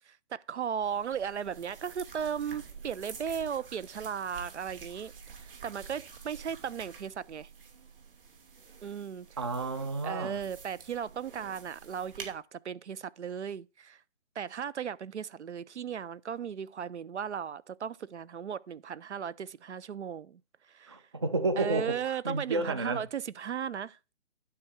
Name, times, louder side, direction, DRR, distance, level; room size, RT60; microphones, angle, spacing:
voice 1, 0.1-5.1 5.4-7.5 8.8-9.3 10.0-14.0 14.4-20.4 20.7-21.0 21.6-24.1, right 8 dB, 70° right, 0.6 m, -36 dB
sound 1, 0.8-12.3, right 5 dB, 50° right, 2.7 m, -49 dB
voice 2, 9.4-10.4 20.9-22.0 22.2-23.1, right 2 dB, 25° right, 0.5 m, -31 dB
12.0 x 4.9 x 4.5 m
figure-of-eight pair, 155°, 36 cm